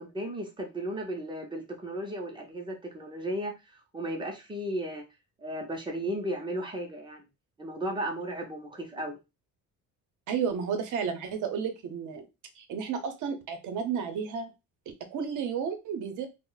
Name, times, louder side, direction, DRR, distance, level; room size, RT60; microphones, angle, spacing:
voice 1, 0.0-5.0 5.4-7.2 7.6-9.2, right 1 dB, 15° right, 2 dB, 0.5 m, -35 dB
voice 2, 10.3-12.2 12.6-14.5 14.9-16.3, right 6 dB, 60° right, 7 dB, 0.6 m, -32 dB
2.3 x 2.1 x 3.7 m, 0.26 s
cardioid pair, 170°, 35 cm